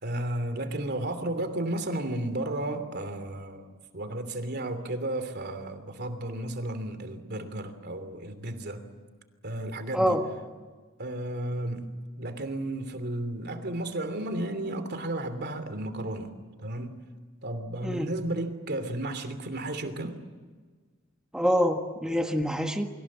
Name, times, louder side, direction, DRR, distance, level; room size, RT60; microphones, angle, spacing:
voice 1, 0.0-8.8 9.4-10.2 11.0-16.3 16.6-17.1 17.4-20.2, right 1 dB, 55° right, 3.0 m, -33 dB
voice 2, 21.3-22.9, equal, 5° right, 1.6 m, -25 dB
30.0 x 23.5 x 7.5 m
head